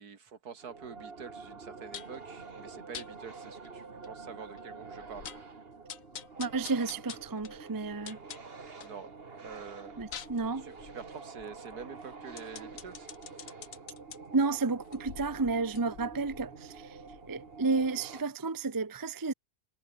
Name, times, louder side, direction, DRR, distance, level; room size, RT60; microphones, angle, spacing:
voice 1, 0.0-5.3 8.8-9.1 9.4-10.0 10.6-13.1, right 6 dB, 70° right, 2.4 m, -46 dB
sound 1, 0.6-18.2, right 4 dB, 35° right, 2.0 m, -47 dB
sound 2, 1.9-2.2 2.9-3.1 3.6-3.7 4.0-4.1 4.6-4.7 5.0-5.5 5.9-9.0 9.4-14.2 14.8-17.5 17.8-17.9, left 8 dB, 55° left, 1.4 m, -47 dB
voice 2, 6.4-8.2 10.0-10.7 14.3-17.0 17.3-19.3, right 3 dB, 20° right, 0.7 m, -31 dB
omnidirectional pair, 1.7 m